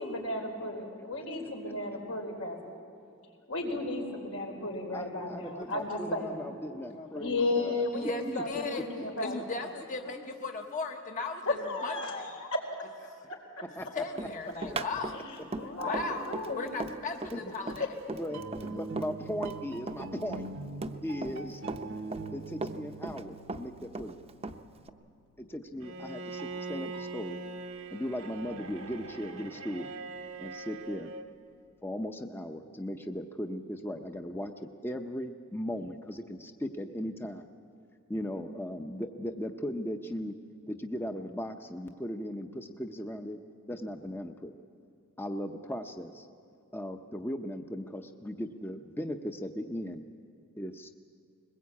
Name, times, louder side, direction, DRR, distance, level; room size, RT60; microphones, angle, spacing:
voice 1, 0.0-2.6 3.5-6.4 7.2-9.3 11.5-12.8 15.3-16.7, left 2 dB, 85° left, 1 dB, 4.3 m, -34 dB
voice 2, 4.9-7.9 8.3-8.4 13.8-13.9 17.3-17.5 18.1-20.5 21.0-21.6 22.3-24.2 25.4-27.4 27.9-29.9 30.4-31.1 31.8-37.4 38.1-40.3 40.7-43.4 43.7-44.5 45.2-46.3 46.7-50.0 50.6-50.9, equal, 10° left, 5 dB, 0.7 m, -37 dB
voice 3, 5.6-6.2 6.7-7.3 7.6-12.3 13.3-13.4 13.9-15.2 15.8-17.9, left 3 dB, 40° left, 3 dB, 1.0 m, -38 dB
Run, 14.2-19.6 19.9-21.4 21.7-23.2 23.5-24.9, right 2 dB, 30° right, 0.7 m, -38 dB
sound 1, 18.2-24.9 26.4-27.1, right 3 dB, 60° right, 0.9 m, -43 dB
Bowed string instrument, 25.8-31.3, right 3 dB, 85° right, 1.2 m, -42 dB
21.5 x 20.0 x 8.4 m, 2.4 s
head